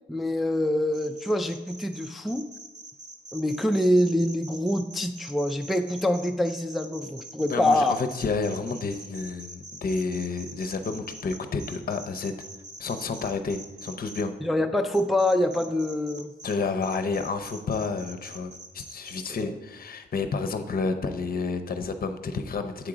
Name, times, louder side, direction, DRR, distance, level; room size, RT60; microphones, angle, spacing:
voice 1, 0.1-2.5 3.3-8.0 14.4-16.3 19.5-19.6, left 1 dB, ahead, 5 dB, 0.4 m, -25 dB
sound 1, 0.9-14.2 14.9-16.6 16.8-19.4, right 2 dB, 60° right, 1.0 m, -44 dB
voice 2, 7.5-12.3 12.8-14.3 16.4-22.9, left 4 dB, 50° left, 7 dB, 0.7 m, -30 dB
7.8 x 3.7 x 4.8 m, 1.1 s
cardioid pair, 65°, 19 cm